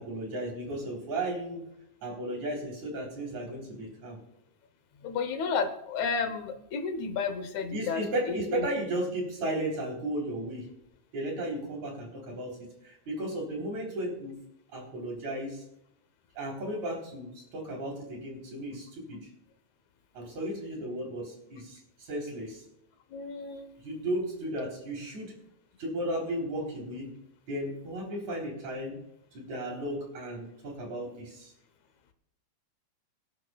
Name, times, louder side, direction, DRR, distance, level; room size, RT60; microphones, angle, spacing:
voice 1, 0.0-1.6 2.0-4.2 7.7-10.7 11.1-14.4 14.7-15.6 16.3-19.3 20.1-22.6 23.8-25.3 25.8-27.1 27.5-29.0 29.3-31.5, right 1 dB, 70° right, -1 dB, 4.8 m, -35 dB
voice 2, 5.0-8.7 23.1-23.8, left 5 dB, 75° left, 9 dB, 2.3 m, -32 dB
25.0 x 10.5 x 2.3 m, 0.78 s
omnidirectional pair, 3.4 m